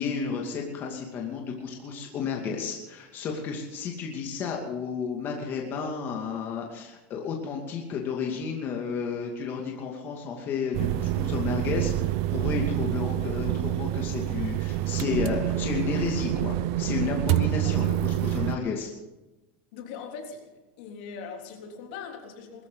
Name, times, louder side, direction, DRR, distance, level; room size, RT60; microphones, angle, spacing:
voice 1, 0.0-18.9, left 5 dB, 35° left, 0 dB, 2.5 m, -32 dB
sound 1, 10.7-18.6, right 14 dB, 60° right, 0.7 m, -27 dB
voice 2, 19.7-20.5 20.8-22.7, left 6 dB, 70° left, 2 dB, 3.4 m, -41 dB
21.0 x 13.5 x 4.0 m, 1.0 s
supercardioid pair, 140°, 6 cm